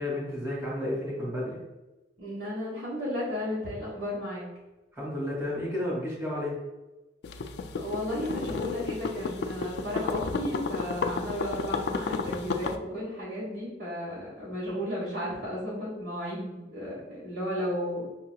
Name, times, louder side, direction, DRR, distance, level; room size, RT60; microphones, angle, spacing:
voice 1, 0.0-1.6 4.9-6.6, left 1 dB, 15° right, -6 dB, 1.3 m, -32 dB
voice 2, 2.2-4.5 7.7-18.0, equal, 80° right, -7 dB, 1.3 m, -34 dB
sound 1, 7.2-12.8, left 4 dB, 65° left, 0.3 m, -32 dB
5.7 x 2.8 x 2.3 m, 1.1 s
head